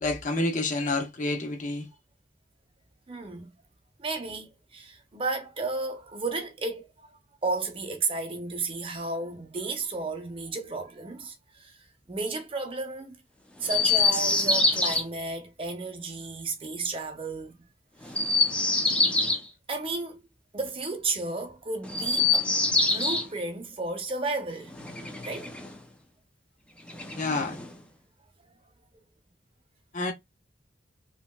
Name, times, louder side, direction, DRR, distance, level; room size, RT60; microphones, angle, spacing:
voice 1, 0.0-1.9 27.1-27.6 29.9-30.1, left 2 dB, 45° left, 0.8 m, -28 dB
voice 2, 3.1-3.5 4.0-6.9 7.4-11.8 12.1-13.2 13.6-17.6 18.0-18.2 19.7-20.2 20.5-24.8 25.2-25.5, right 3 dB, 30° right, 0.7 m, -33 dB
Chirp tweet, 13.7-15.0 18.0-19.4 21.8-23.3 24.7-25.8 26.9-27.8, left 3 dB, 5° left, 0.5 m, -25 dB
3.0 x 2.8 x 2.2 m
head